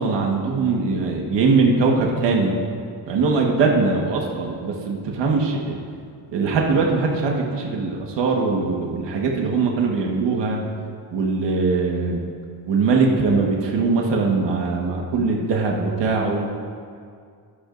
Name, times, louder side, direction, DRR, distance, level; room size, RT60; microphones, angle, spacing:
voice 1, 0.0-2.6 3.1-5.8 6.3-10.6 11.1-12.2 12.7-16.5, right 4 dB, 85° right, 0 dB, 1.5 m, -21 dB
21.0 x 8.7 x 2.6 m, 2.2 s
cardioid pair, 125°, 42 cm